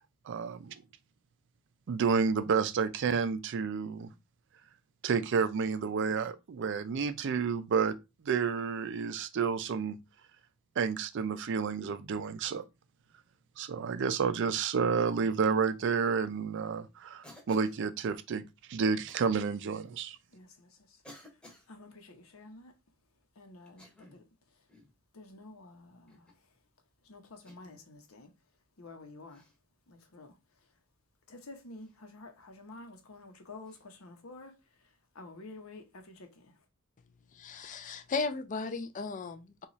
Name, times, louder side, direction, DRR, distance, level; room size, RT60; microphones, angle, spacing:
voice 1, 0.3-0.8 1.9-4.1 5.0-8.0 8.2-10.0 10.8-12.6 13.6-18.4 18.7-20.2, right 5 dB, 60° right, 0.4 m, -30 dB
Cough, 17.2-17.8 19.1-19.3 20.2-20.3 21.0-21.7 23.7-24.3 24.7-25.0 26.1-26.4 27.5-27.8 29.3-29.6 31.8-31.9 33.6-33.8, left 1 dB, 5° left, 0.9 m, -55 dB
voice 2, 20.3-22.7 23.3-24.7 25.1-26.6 27.0-28.3 28.8-29.5 29.9-30.7 31.3-36.6, left 2 dB, 80° left, 0.8 m, -51 dB
voice 3, 37.3-39.7, left 4 dB, 40° left, 0.4 m, -36 dB
3.0 x 2.4 x 3.9 m
head